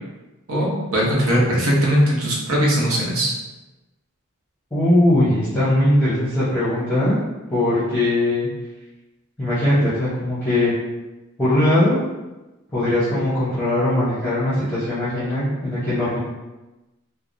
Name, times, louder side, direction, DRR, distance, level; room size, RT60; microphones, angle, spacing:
voice 1, 0.5-3.3, equal, 75° right, -4 dB, 0.8 m, -19 dB
voice 2, 4.7-7.2 7.5-8.5 9.4-10.7 11.4-12.0 12.7-16.2, left 1 dB, 10° left, -13 dB, 0.8 m, -20 dB
3.3 x 2.1 x 2.5 m, 1.1 s
head